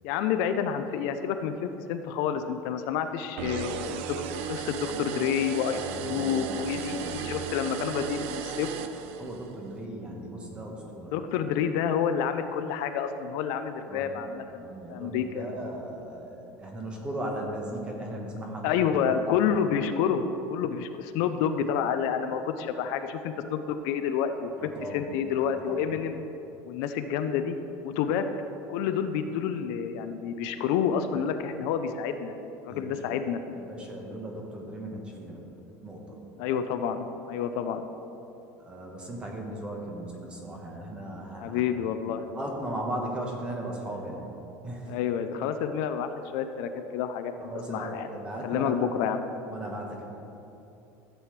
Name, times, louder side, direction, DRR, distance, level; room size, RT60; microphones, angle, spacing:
voice 1, 0.0-4.1 4.5-8.7 11.1-15.5 18.6-20.2 20.5-26.2 26.7-27.6 27.8-28.3 28.7-32.4 32.6-33.6 36.4-37.9 41.4-42.2 44.9-48.1 48.4-49.2, left 8 dB, 60° left, 8 dB, 0.5 m, -29 dB
sound 1, 3.4-9.6, right 7 dB, 80° right, 0.6 m, -35 dB
voice 2, 5.7-7.3 9.2-11.2 13.9-14.1 14.6-18.7 19.1-19.3 24.6-25.1 25.5-25.9 32.7-33.2 33.5-35.5 35.8-36.2 38.6-41.6 42.1-44.3 44.6-45.0 47.4-48.9 49.5-50.0, right 1 dB, 15° right, 0 dB, 1.2 m, -37 dB
14.0 x 7.7 x 3.2 m, 2.9 s
cardioid pair, 170°, 7 cm